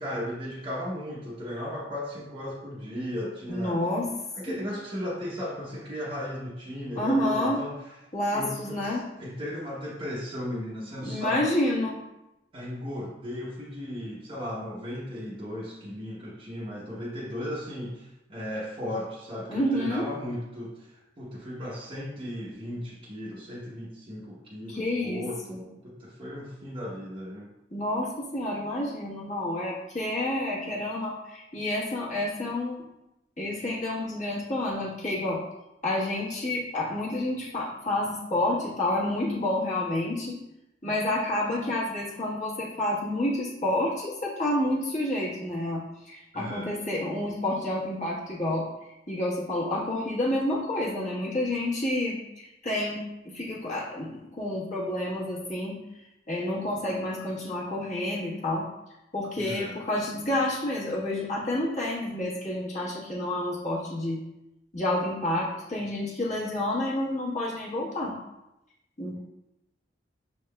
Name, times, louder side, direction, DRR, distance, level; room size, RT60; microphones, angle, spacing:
voice 1, 0.0-3.9 4.3-8.0 8.3-11.5 12.5-27.5 46.3-46.7 59.4-59.8, equal, 30° right, -7 dB, 0.8 m, -36 dB
voice 2, 3.5-4.1 4.5-4.6 6.9-7.6 8.1-9.0 11.0-12.0 19.5-20.0 24.7-25.6 27.7-32.8 33.4-35.4 35.8-40.4 40.8-48.6 49.1-55.8 56.3-58.7 59.1-64.2 64.7-68.1 69.0-69.2, left 1 dB, 45° left, -6 dB, 1.2 m, -29 dB
5.8 x 3.5 x 2.2 m, 0.92 s
head